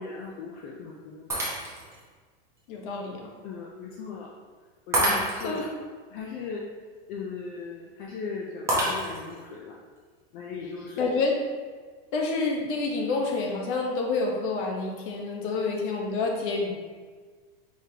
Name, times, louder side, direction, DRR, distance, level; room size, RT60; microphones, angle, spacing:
voice 1, 0.0-1.4 3.4-4.3 4.9-5.6 6.1-6.6 7.1-9.8 10.3-11.1, left 5 dB, 30° left, -2 dB, 0.4 m, -38 dB
Shatter, 1.3-2.0 2.6-2.7 4.9-5.7 8.7-9.4, right 1 dB, 10° right, 0.9 m, -27 dB
voice 2, 2.7-3.3 5.3-5.7 11.0-11.4 12.1-16.7, left 3 dB, 55° left, 0 dB, 1.0 m, -28 dB
4.7 x 3.8 x 2.7 m, 1.5 s
supercardioid pair, 145°, 30 cm